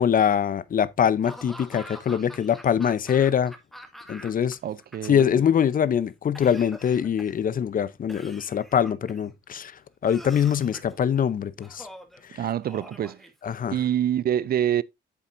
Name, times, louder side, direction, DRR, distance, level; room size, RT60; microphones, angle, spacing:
voice 1, 0.0-3.5 4.1-4.6 5.0-9.7 10.0-11.9 12.3-12.4 13.4-13.8, left 8 dB, 45° left, 0.7 m, -23 dB
Laughter / Cough, 1.2-4.5 4.8-5.7 6.4-7.5 8.1-9.3 10.0-11.0 11.6-12.2 12.6-13.8, equal, ahead, 1.8 m, -45 dB
voice 2, 4.6-5.3 12.3-13.2 13.7-14.8, right 10 dB, 50° right, 0.5 m, -26 dB
8.4 x 7.2 x 2.6 m
cardioid pair, 90°, 20 cm